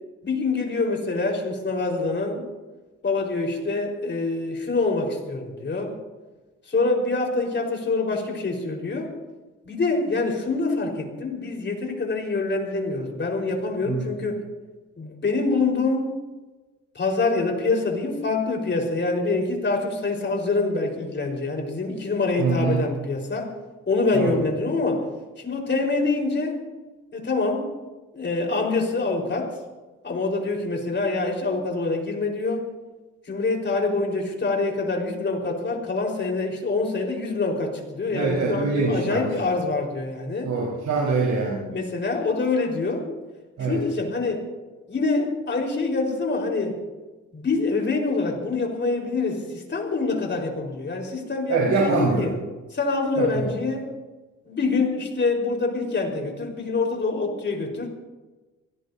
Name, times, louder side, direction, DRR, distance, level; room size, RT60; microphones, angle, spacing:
voice 1, 0.2-2.5 3.0-5.9 6.7-9.1 9.7-14.4 15.0-16.2 16.9-23.5 23.9-25.0 25.4-26.6 27.1-27.6 28.1-29.5 30.0-32.6 33.3-40.5 41.7-43.1 43.6-44.4 44.9-46.8 47.3-52.3 52.7-53.9 54.4-57.9, left 3 dB, 35° left, 1 dB, 4.7 m, -25 dB
voice 2, 22.4-22.8 24.1-24.3 38.1-39.3 40.4-41.6 43.6-43.8 51.5-52.2 53.2-53.5, right 4 dB, 70° right, -4 dB, 4.8 m, -24 dB
24.0 x 17.5 x 2.8 m, 1.2 s
cardioid pair, 90°, 30 cm